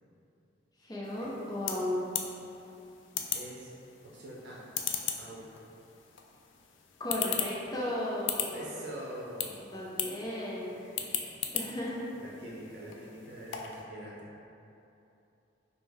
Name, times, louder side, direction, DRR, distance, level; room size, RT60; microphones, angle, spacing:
voice 1, 0.8-2.1 7.0-8.8 9.7-10.8 11.5-12.0, left 1 dB, 20° left, -5 dB, 0.6 m, -35 dB
sound 1, 1.0-13.8, left 8 dB, 85° left, 0.4 m, -39 dB
voice 2, 3.3-3.7 4.0-4.6 5.2-5.5 8.5-9.7 10.8-10.9 11.6-11.8 12.2-14.3, right 1 dB, 70° right, -5 dB, 0.6 m, -44 dB
5.3 x 2.1 x 3.4 m, 2.8 s
head